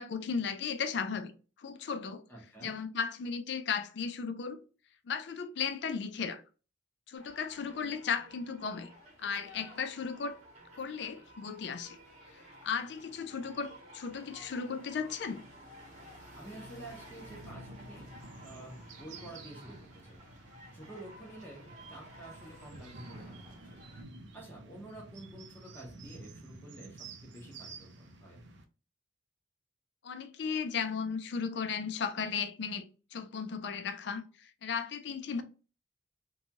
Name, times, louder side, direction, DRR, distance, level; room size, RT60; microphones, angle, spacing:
voice 1, 0.0-1.3 1.6-2.2 2.6-4.6 5.1-6.4 7.1-8.9 9.2-10.4 10.8-12.0 12.6-15.4 30.0-35.4, left 6 dB, 60° left, 0.4 m, -35 dB
voice 2, 2.3-2.8 16.3-18.1 18.4-20.2 20.7-23.6 24.3-28.4, right 1 dB, 10° left, 0.7 m, -49 dB
sound 1, 7.2-24.0, equal, 35° right, 1.0 m, -53 dB
sound 2, 16.9-28.7, right 3 dB, 65° right, 0.4 m, -51 dB
2.8 x 2.2 x 2.8 m
head